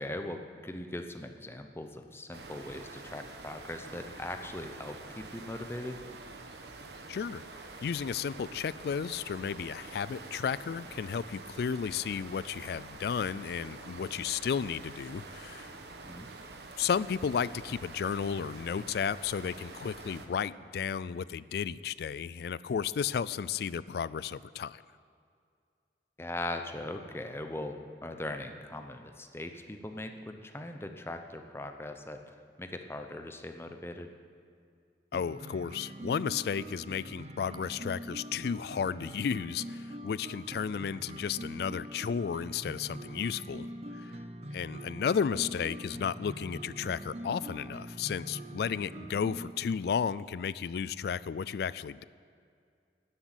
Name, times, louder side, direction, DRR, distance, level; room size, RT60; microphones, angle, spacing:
voice 1, 0.0-6.0 16.0-16.3 26.2-27.8 28.0-34.1, left 1 dB, 15° left, 6 dB, 0.7 m, -40 dB
sound 1, 2.3-20.3, right 3 dB, 70° right, 1.1 m, -47 dB
voice 2, 7.1-7.4 7.8-15.7 16.8-24.8 35.1-43.7 44.0-44.1 44.5-52.0, left 7 dB, 60° left, 18 dB, 0.3 m, -33 dB
sound 2, 35.1-49.5, right 1 dB, 35° right, 0.6 m, -43 dB
12.5 x 8.1 x 9.0 m, 2.3 s
head